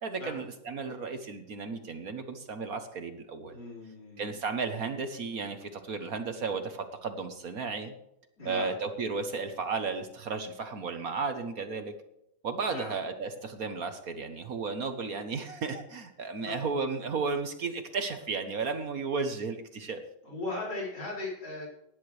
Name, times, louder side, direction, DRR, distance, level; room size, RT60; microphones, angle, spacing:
voice 1, 0.0-3.5 4.2-7.9 8.4-11.9 12.4-20.0, right 4 dB, 50° right, 8 dB, 1.3 m, -34 dB
voice 2, 3.5-4.3 8.4-8.7 12.7-12.9 16.4-16.6 20.2-21.7, left 2 dB, 55° left, -4 dB, 5.8 m, -37 dB
18.0 x 10.5 x 3.3 m, 0.83 s
omnidirectional pair, 2.3 m